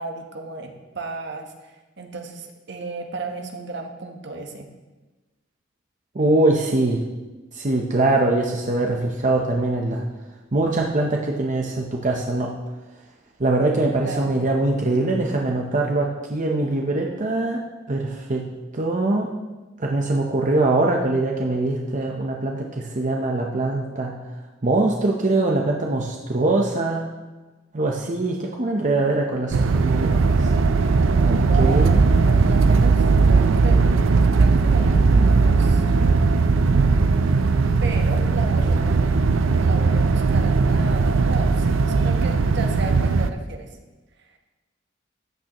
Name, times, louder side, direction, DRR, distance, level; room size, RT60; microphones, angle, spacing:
voice 1, 0.0-4.7 14.0-14.3 31.3-34.0 34.4-36.3 37.8-39.0 39.6-43.7 44.2-44.3, right 3 dB, 60° right, 3 dB, 1.2 m, -34 dB
voice 2, 6.1-7.0 7.5-10.0 10.5-12.5 13.4-17.6 17.9-18.4 18.7-19.3 19.8-24.1 24.6-27.1 27.7-30.5 31.2-32.0, right 2 dB, 40° right, 0 dB, 0.8 m, -22 dB
sound 1, 29.5-43.3, right 4 dB, 85° right, 0.5 m, -18 dB
13.5 x 8.8 x 3.0 m, 1.2 s
head